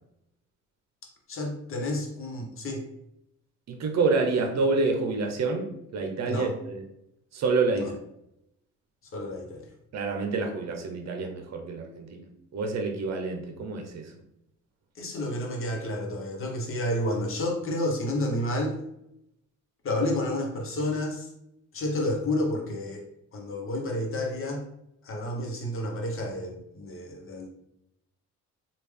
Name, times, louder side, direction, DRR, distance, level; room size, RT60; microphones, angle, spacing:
voice 1, 1.3-2.8 6.3-6.5 7.7-7.9 9.1-9.6 15.0-18.7 19.8-21.3 21.7-23.0 23.3-24.6 25.0-27.5, left 1 dB, 45° left, 1 dB, 1.0 m, -30 dB
voice 2, 3.7-6.8 7.3-7.9 9.9-12.2 12.5-14.1, right 3 dB, 60° right, 3 dB, 0.8 m, -28 dB
3.3 x 2.5 x 3.3 m, 0.79 s
cardioid pair, 90°, 30 cm